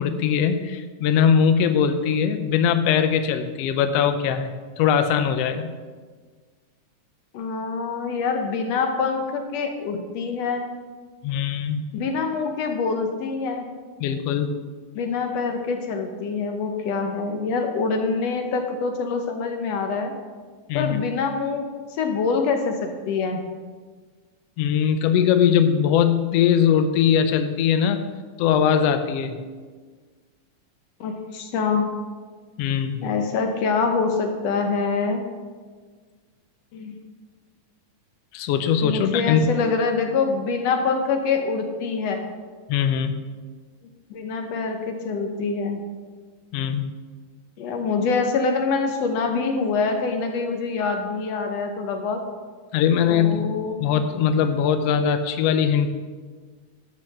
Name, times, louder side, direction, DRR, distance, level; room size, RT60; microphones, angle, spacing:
voice 1, 0.0-4.5 4.8-5.7 11.2-11.8 14.0-14.5 20.7-21.0 24.6-28.1 28.4-29.3 32.6-33.0 38.3-39.5 42.7-43.1 46.5-46.9 52.7-53.4 53.8-56.0, left 8 dB, 90° left, 9 dB, 1.4 m, -21 dB
voice 2, 7.3-10.7 11.9-13.7 14.9-20.1 20.7-23.4 31.0-31.9 33.0-35.2 36.7-37.0 38.8-42.3 44.1-45.8 47.6-52.2 53.0-53.8, left 4 dB, 70° left, 5 dB, 1.7 m, -25 dB
12.0 x 5.6 x 6.4 m, 1.5 s
omnidirectional pair, 3.6 m